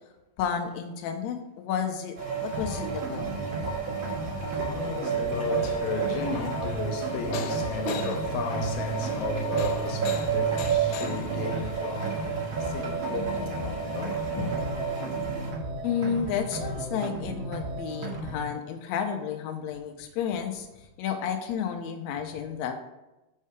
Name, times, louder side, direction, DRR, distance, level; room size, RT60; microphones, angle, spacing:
voice 1, 0.4-3.3 15.8-20.7 21.0-22.7, left 7 dB, 90° left, 1.6 m, -31 dB
sound 1, 2.2-15.5, right 6 dB, 45° right, 2.0 m, -31 dB
sound 2, 2.5-18.5, right 2 dB, 90° right, 2.8 m, -34 dB
voice 2, 4.0-14.9, left 6 dB, 75° left, 1.9 m, -35 dB
6.5 x 5.5 x 4.8 m
omnidirectional pair, 3.9 m